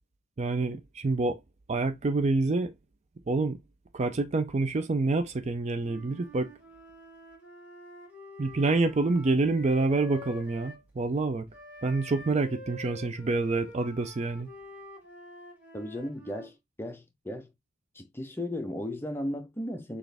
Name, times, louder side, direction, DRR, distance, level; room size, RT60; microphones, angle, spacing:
voice 1, 0.4-1.4 1.7-2.7 3.3-3.6 3.9-6.5 8.4-11.5 11.8-14.5, right 3 dB, 30° right, 0.4 m, -27 dB
Wind instrument woodwind instrument, 5.8-10.8 11.5-16.5, left 1 dB, 5° right, 1.8 m, -47 dB
voice 2, 15.7-17.5 17.9-20.0, left 1 dB, 10° left, 0.6 m, -36 dB
6.2 x 2.4 x 3.3 m
head